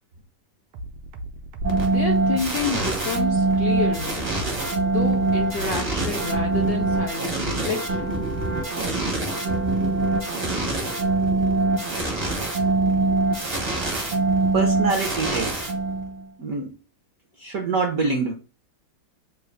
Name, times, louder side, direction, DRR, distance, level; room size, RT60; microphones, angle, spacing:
sound 1, 0.7-7.1, right 2 dB, 90° right, 1.6 m, -37 dB
sound 2, 1.6-16.2, right 2 dB, 40° right, 0.6 m, -24 dB
voice 1, 1.8-4.2 4.9-8.1, left 5 dB, 75° left, 0.8 m, -29 dB
voice 2, 14.5-15.7 16.4-16.7 17.4-18.3, right 4 dB, 70° right, 0.8 m, -25 dB
3.8 x 2.4 x 4.4 m
omnidirectional pair, 2.3 m